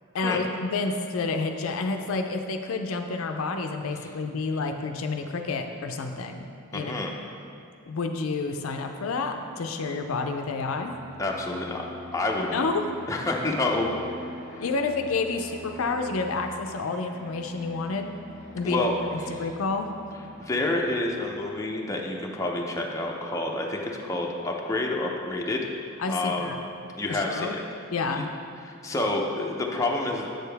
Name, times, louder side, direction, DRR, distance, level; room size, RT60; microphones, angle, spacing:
voice 1, 0.1-6.5 6.7-6.9 7.9-10.9 12.5-12.9 14.6-18.1 18.5-18.8 19.3-19.9 26.0-26.6 27.1-27.6 27.9-28.3, left 4 dB, 75° left, 5 dB, 0.5 m, -29 dB
voice 2, 6.7-7.1 11.2-11.8 12.1-12.6 13.1-14.0 14.5-14.6 18.6-18.9 19.3-19.5 20.4-25.7 26.1-26.7 27.0-27.6 28.1-28.2 28.7-30.3, left 2 dB, 15° left, -1 dB, 0.6 m, -28 dB
Fixed-wing aircraft airplane, 8.4-23.6, equal, 20° right, 1.4 m, -45 dB
7.6 x 6.7 x 3.4 m, 2.6 s
head